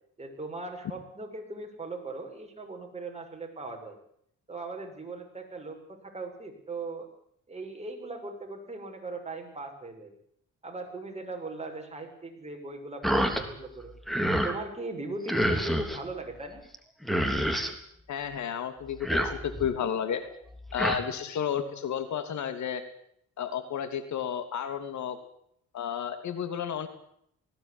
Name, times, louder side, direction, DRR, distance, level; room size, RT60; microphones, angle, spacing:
voice 1, 0.2-4.0 4.5-7.1 7.5-10.1 10.6-13.9 14.3-16.6, right 3 dB, 20° right, 3 dB, 6.8 m, -39 dB
sound 1, 13.0-13.4 13.8-14.6 15.3-16.0 16.7-16.8 17.0-17.7 18.9-19.7 20.5-21.0, equal, ahead, 3.4 m, -28 dB
voice 2, 18.1-20.2 20.7-22.8 23.4-25.2 25.7-26.9, left 8 dB, 70° left, 9 dB, 3.0 m, -32 dB
20.0 x 17.0 x 9.9 m, 0.69 s
cardioid pair, 90°, 30 cm